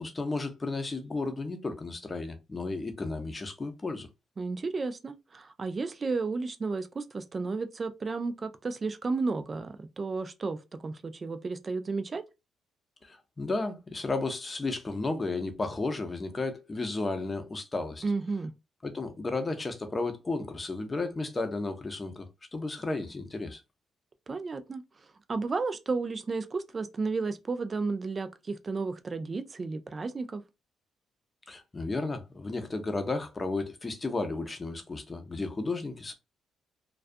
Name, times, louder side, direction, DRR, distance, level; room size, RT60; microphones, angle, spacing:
voice 1, 0.0-4.1 13.0-18.0 18.8-22.3 22.5-23.6 31.5-36.1, left 3 dB, 25° left, 0.6 m, -33 dB
voice 2, 4.4-12.2 18.0-18.5 24.3-24.8 25.3-30.4, right 4 dB, 35° right, 0.4 m, -33 dB
2.3 x 2.3 x 2.5 m
cardioid pair, 90°, 0 cm